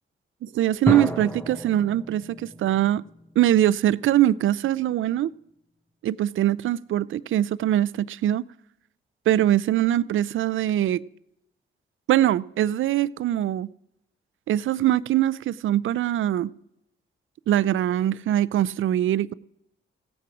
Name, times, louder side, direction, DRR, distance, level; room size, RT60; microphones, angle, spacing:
voice 1, 0.4-3.0 3.4-5.3 6.0-8.5 9.3-11.0 12.1-13.7 14.5-16.5 17.5-19.3, right 12 dB, 70° right, 0.4 m, -22 dB
sound 1, 0.9-4.3, equal, 10° left, 0.9 m, -32 dB
16.0 x 8.5 x 4.8 m
cardioid pair, 90°, 21 cm